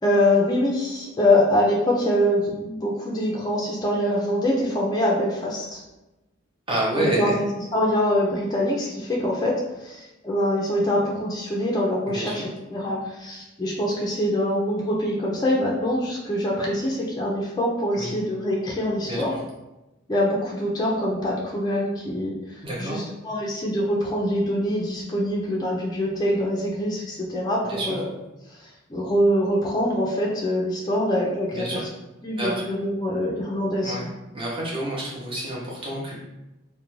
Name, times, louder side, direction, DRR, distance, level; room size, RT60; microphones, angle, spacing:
voice 1, 0.0-5.8 7.0-19.4 20.1-28.1 28.5-31.9 32.2-33.9, left 1 dB, 20° left, -3 dB, 0.3 m, -24 dB
voice 2, 6.7-7.4 12.1-12.3 17.9-18.1 19.0-19.2 22.6-23.0 27.7-28.0 31.5-31.8 32.4-32.6 33.8-34.0 34.3-36.1, right 1 dB, 25° right, -4 dB, 0.6 m, -28 dB
2.4 x 2.1 x 3.0 m, 0.99 s
head